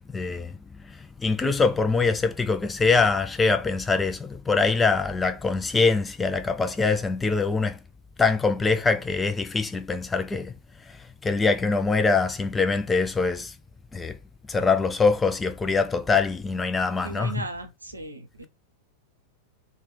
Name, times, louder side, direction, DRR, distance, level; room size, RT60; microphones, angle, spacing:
voice 1, 0.1-0.5 1.2-7.8 8.2-10.5 11.2-13.5 13.9-14.2 14.5-17.5, left 4 dB, 15° left, 0.4 m, -23 dB
voice 2, 17.0-18.5, right 3 dB, 80° right, 0.5 m, -36 dB
3.1 x 2.2 x 3.1 m
figure-of-eight pair, 90°, 0 cm